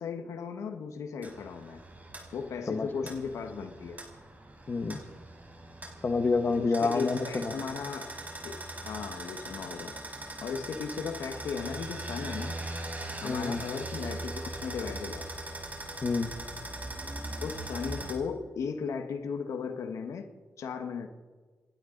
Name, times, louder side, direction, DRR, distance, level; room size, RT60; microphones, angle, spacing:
voice 1, 0.0-1.8 2.3-4.0 6.6-8.1 8.4-10.0 10.4-12.6 13.2-15.3 17.4-20.3 20.6-21.1, left 6 dB, 90° left, 6 dB, 1.5 m, -36 dB
sound 1, 1.2-18.1, right 2 dB, 30° right, 5.0 m, -40 dB
voice 2, 4.7-5.0 6.0-7.6 13.2-13.6 16.0-16.4, left 4 dB, 40° left, 8 dB, 1.3 m, -28 dB
29.5 x 12.0 x 4.0 m, 1.4 s
cardioid pair, 75°, 5 cm